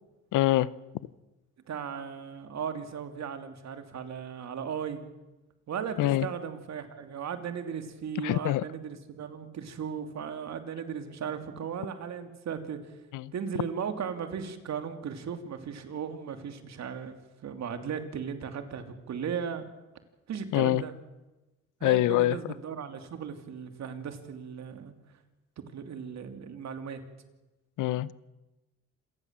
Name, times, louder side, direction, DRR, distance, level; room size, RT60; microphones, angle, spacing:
voice 1, 0.3-0.7 6.0-6.3 8.2-8.6 13.1-13.3 20.5-20.8 21.8-22.4 27.8-28.1, left 15 dB, 85° left, 20 dB, 0.8 m, -24 dB
voice 2, 1.7-5.1 5.7-13.0 13.3-17.1 17.4-19.7 20.3-20.9 21.8-24.9 25.7-27.0, right 7 dB, 60° right, 7 dB, 2.9 m, -36 dB
27.0 x 18.5 x 7.5 m, 1.1 s
cardioid pair, 90°, 30 cm